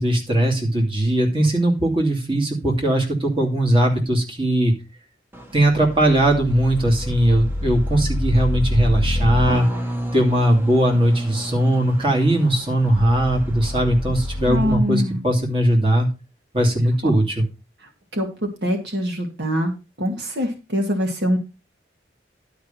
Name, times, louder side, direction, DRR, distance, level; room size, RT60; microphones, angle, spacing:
voice 1, 0.0-4.7 5.5-9.7 10.1-16.1 16.5-17.4, right 1 dB, 30° right, -1 dB, 2.7 m, -19 dB
sound 1, 5.3-14.8, equal, 10° right, 1.2 m, -27 dB
voice 2, 14.5-15.2 18.1-19.7 20.0-21.4, equal, 70° right, 3 dB, 2.3 m, -23 dB
11.5 x 5.2 x 5.8 m, 0.29 s
head